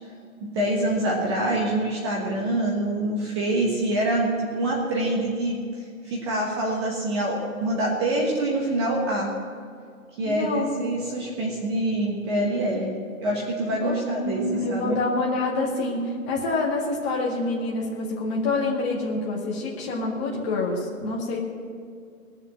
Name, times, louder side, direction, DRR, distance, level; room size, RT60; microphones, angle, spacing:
voice 1, 0.4-5.6 6.0-9.3 10.2-13.0 13.2-15.0, right 1 dB, 20° right, -2 dB, 1.3 m, -25 dB
voice 2, 10.3-10.7 13.8-21.4, left 2 dB, 20° left, -3 dB, 2.0 m, -27 dB
19.5 x 7.3 x 7.7 m, 2.2 s
hypercardioid pair, 165°, 43 cm